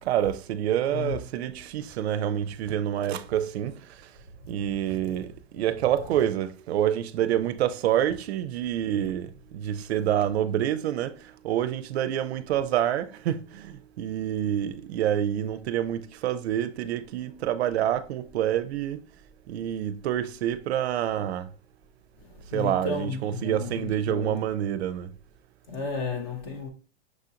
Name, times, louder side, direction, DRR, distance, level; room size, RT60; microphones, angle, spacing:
voice 1, 0.0-4.0 4.5-19.0 19.5-21.5 22.5-25.1, right 11 dB, 70° right, 0.5 m, -27 dB
voice 2, 0.9-1.2 22.2-24.4 25.7-26.7, left 4 dB, 25° left, 0.4 m, -33 dB
6.1 x 2.5 x 2.7 m
supercardioid pair, 170°, 33 cm